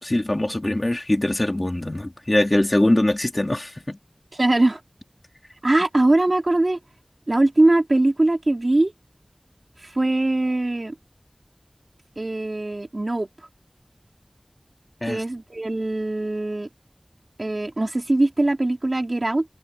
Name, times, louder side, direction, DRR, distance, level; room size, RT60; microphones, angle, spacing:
voice 1, 0.0-4.0 15.0-15.2, left 1 dB, 40° left, 4.1 m, -22 dB
voice 2, 4.4-4.8 5.6-6.8 7.3-8.9 9.9-10.9 12.2-13.3 15.1-16.7 17.4-19.5, right 2 dB, 60° right, 4.4 m, -21 dB
wide cardioid pair, 45°, 0 cm